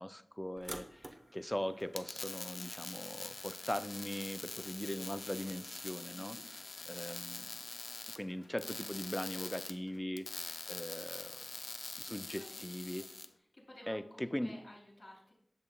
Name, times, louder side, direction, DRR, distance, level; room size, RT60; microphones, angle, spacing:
voice 1, 0.0-6.4 6.9-7.5 8.2-11.4 12.0-13.1 13.9-14.5, equal, 10° left, 11 dB, 0.4 m, -40 dB
sound 1, 0.6-9.3, right 1 dB, 35° right, 1.0 m, -56 dB
sound 2, 1.8-13.3, left 3 dB, 65° left, 0.5 m, -45 dB
voice 2, 12.1-12.7 13.4-15.3, left 1 dB, 40° left, -1 dB, 3.0 m, -55 dB
10.5 x 6.3 x 2.3 m, 0.71 s
wide cardioid pair, 55°, 0 cm